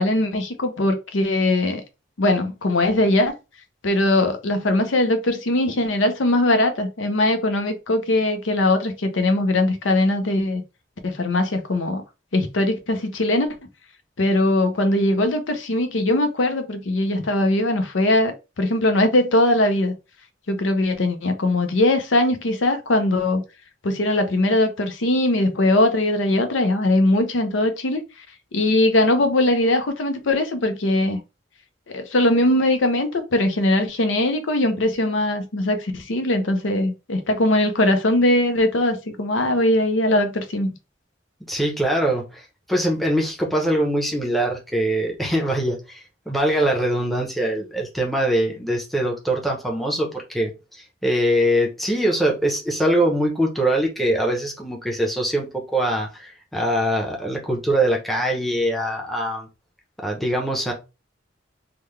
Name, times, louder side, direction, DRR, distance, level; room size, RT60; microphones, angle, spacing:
voice 1, 0.0-1.8 2.2-3.3 3.8-10.6 11.0-12.0 12.3-13.5 14.2-19.9 20.5-23.4 23.8-28.0 28.5-31.2 31.9-40.7, left 1 dB, 75° left, 0.6 m, -20 dB
voice 2, 41.5-42.4 42.7-50.5 51.0-55.5 55.7-59.5 60.0-60.7, right 1 dB, ahead, 0.8 m, -22 dB
3.7 x 2.2 x 3.2 m
head